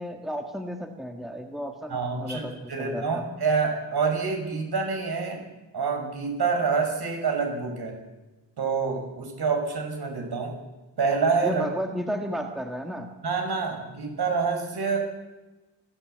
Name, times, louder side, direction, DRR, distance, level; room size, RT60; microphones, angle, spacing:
voice 1, 0.0-3.2 11.4-13.1, equal, ahead, 3 dB, 1.6 m, -33 dB
voice 2, 1.9-2.4 2.7-5.4 5.7-8.0 8.6-10.6 11.0-11.6 13.2-15.1, right 5 dB, 60° right, 2 dB, 6.1 m, -27 dB
29.5 x 14.0 x 8.0 m, 1.1 s
wide cardioid pair, 180°, 43 cm